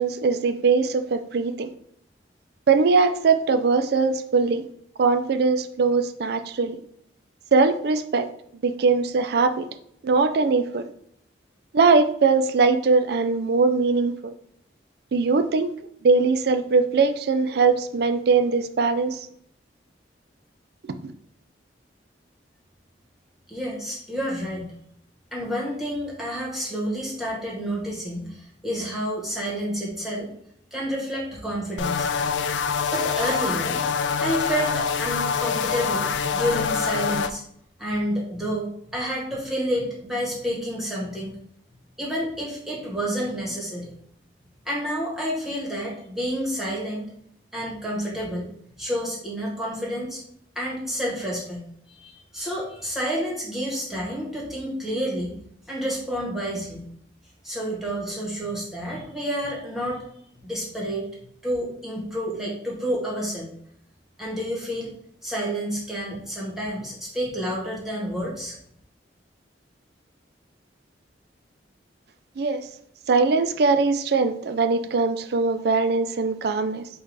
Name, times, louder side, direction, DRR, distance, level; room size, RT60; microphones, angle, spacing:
voice 1, 0.0-1.7 2.7-4.6 5.0-6.8 7.5-8.3 8.6-9.7 10.0-10.9 11.7-14.3 15.1-15.7 16.0-19.2 21.0-21.1 72.4-72.7 73.1-76.9, right 4 dB, 60° right, 10 dB, 0.4 m, -21 dB
voice 2, 23.5-24.7 25.3-30.3 30.7-32.1 32.9-33.8 34.2-37.4 37.8-41.3 42.0-43.9 44.6-47.1 47.5-48.5 48.8-50.2 50.5-55.3 55.7-56.9 57.4-60.0 60.4-61.0 61.4-63.5 64.2-64.9 65.2-68.5, equal, ahead, -5 dB, 1.4 m, -29 dB
sound 1, 31.8-37.3, left 6 dB, 80° left, 0.3 m, -25 dB
4.6 x 2.4 x 4.6 m, 0.67 s
head